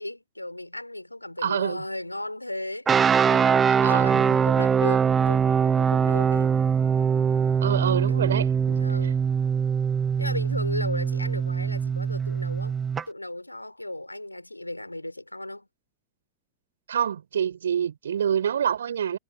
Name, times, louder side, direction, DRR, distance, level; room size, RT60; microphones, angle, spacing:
voice 1, 0.0-6.5 8.1-8.3 8.7-9.2 10.2-15.7, left 1 dB, 85° left, 4.5 m, -36 dB
voice 2, 1.4-1.8 3.8-4.3 7.6-8.8 16.9-19.2, right 8 dB, 65° right, 6.3 m, -26 dB
sound 1, 2.9-13.0, right 7 dB, 20° right, 0.6 m, -22 dB
figure-of-eight pair, 90°, 0 cm